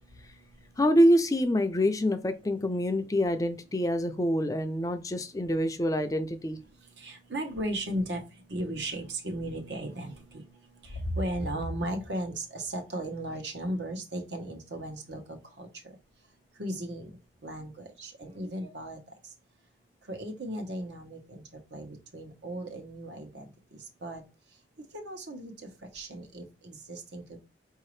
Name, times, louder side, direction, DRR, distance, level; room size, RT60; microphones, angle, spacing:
voice 1, 0.8-6.6, equal, 20° left, 0.4 m, -26 dB
voice 2, 7.0-8.2 8.5-10.4 10.8-15.7 16.6-17.1 17.4-19.0 20.1-21.4 21.7-23.4 23.7-24.2 24.9-25.5 25.9-27.4, right 1 dB, 80° right, 1.1 m, -36 dB
4.9 x 2.8 x 3.1 m
head